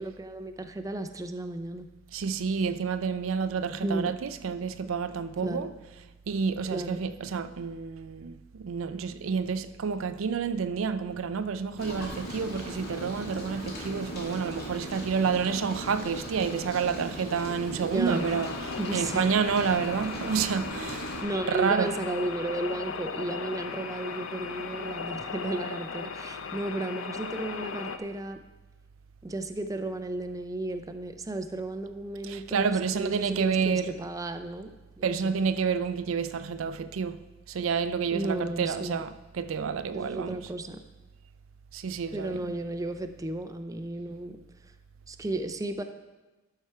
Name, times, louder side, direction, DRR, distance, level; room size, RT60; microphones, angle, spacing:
voice 1, 0.0-1.9 3.8-4.2 5.4-5.7 6.7-7.0 17.8-18.2 18.8-19.3 21.2-28.4 29.2-35.4 38.1-39.0 39.9-40.8 42.1-44.4 45.1-45.8, right 2 dB, 15° right, 0.4 m, -34 dB
voice 2, 2.1-21.9 32.2-34.0 35.0-37.2 37.5-40.5 41.7-42.5, right 6 dB, 90° right, 0.5 m, -29 dB
Rain, 11.8-21.2, equal, 50° left, 2.1 m, -39 dB
sound 1, 18.1-28.0, left 5 dB, 70° left, 0.6 m, -37 dB
12.0 x 5.8 x 4.5 m
head